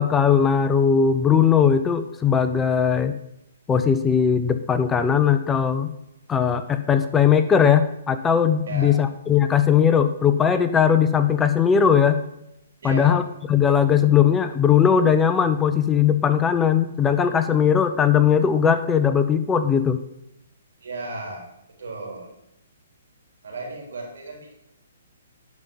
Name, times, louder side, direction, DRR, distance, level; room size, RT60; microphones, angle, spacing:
voice 1, 0.0-3.2 3.7-5.9 6.3-12.2 12.8-13.2 13.5-20.0, left 7 dB, 15° left, 10 dB, 0.6 m, -19 dB
voice 2, 8.7-9.0 12.8-13.2 20.8-22.3 23.4-24.5, right 2 dB, 70° right, 0 dB, 4.1 m, -35 dB
11.0 x 5.5 x 7.1 m, 0.83 s
hypercardioid pair, 135°, 0 cm